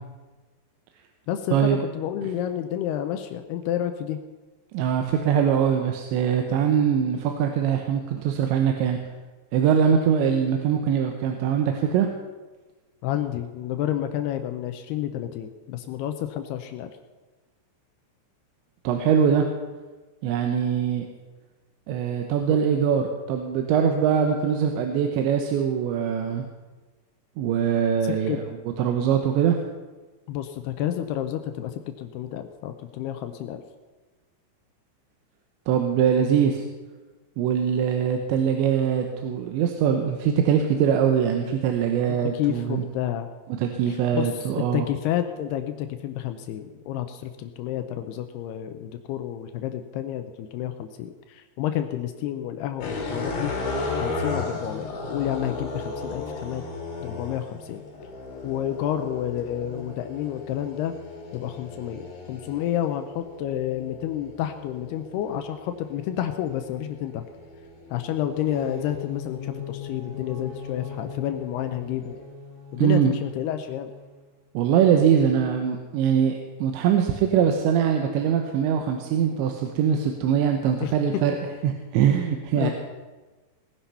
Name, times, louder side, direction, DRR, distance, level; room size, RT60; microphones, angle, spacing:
voice 1, 1.3-4.2 13.0-16.9 22.5-22.6 28.0-28.4 30.3-33.6 42.2-43.3 43.9-53.6 53.9-56.6 57.0-57.8 58.4-61.0 61.3-67.2 67.9-72.2 72.7-73.9 80.8-80.9 82.6-82.7, left 11 dB, 80° left, 8 dB, 2.5 m, -30 dB
voice 2, 4.7-9.0 9.5-12.1 18.8-19.5 20.2-21.1 21.9-26.4 27.4-28.4 28.8-29.6 35.7-36.6 37.4-42.8 43.6-44.9 72.8-73.1 74.5-81.4 81.6-82.7, right 8 dB, 80° right, 4 dB, 3.2 m, -22 dB
sound 1, 52.8-69.1 69.8-72.2, left 3 dB, 65° left, 4.8 m, -36 dB
sound 2, 68.3-74.2, left 6 dB, 55° right, 0.6 m, -39 dB
19.0 x 10.0 x 5.6 m, 1.3 s
omnidirectional pair, 5.2 m